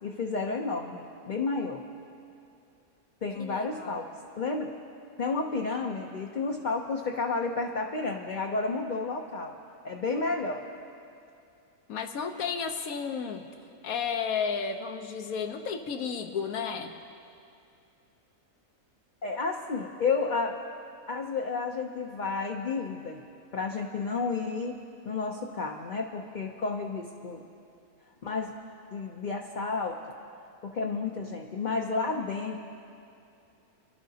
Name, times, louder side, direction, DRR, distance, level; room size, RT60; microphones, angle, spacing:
voice 1, 0.0-1.8 3.2-4.1 4.4-4.7 5.2-9.5 9.8-10.6 19.2-20.5 21.1-23.2 23.5-24.8 25.1-27.4 28.2-28.5 28.9-30.0 30.6-32.6, left 4 dB, 45° left, 1 dB, 0.6 m, -31 dB
voice 2, 3.4-4.0 11.9-13.4 13.8-16.9, left 6 dB, 80° left, 6 dB, 1.3 m, -32 dB
28.5 x 11.5 x 2.8 m, 2.6 s
omnidirectional pair, 1.5 m